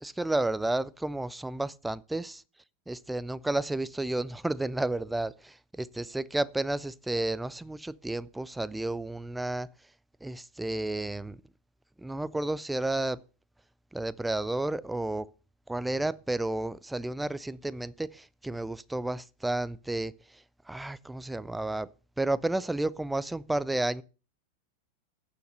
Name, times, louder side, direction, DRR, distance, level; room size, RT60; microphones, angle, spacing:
voice 1, 0.0-2.4 2.9-9.7 10.2-11.4 12.0-13.2 13.9-15.3 15.7-20.4 20.7-21.9 22.2-24.0, right 2 dB, 5° right, 0.4 m, -31 dB
9.3 x 6.5 x 6.6 m
figure-of-eight pair, 90°, 0 cm